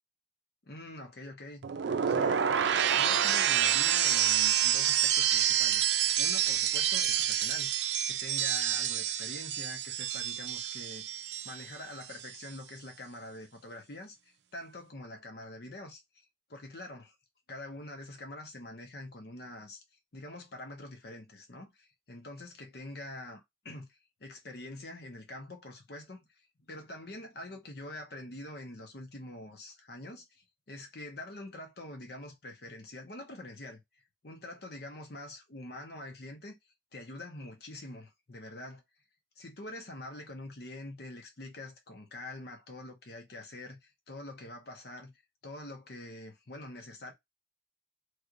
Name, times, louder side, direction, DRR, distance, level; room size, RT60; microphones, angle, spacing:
voice 1, 0.6-1.6 2.0-2.4 2.9-5.9 6.2-11.2 11.4-16.2 16.5-17.1 17.5-19.8 20.1-26.3 26.6-33.8 34.2-36.5 36.9-38.8 39.4-45.1 45.4-47.1, left 2 dB, 65° left, 1.0 m, -45 dB
sound 1, 1.6-11.7 12.0-12.5, right 10 dB, 85° right, 0.4 m, -28 dB
3.2 x 3.0 x 2.5 m
head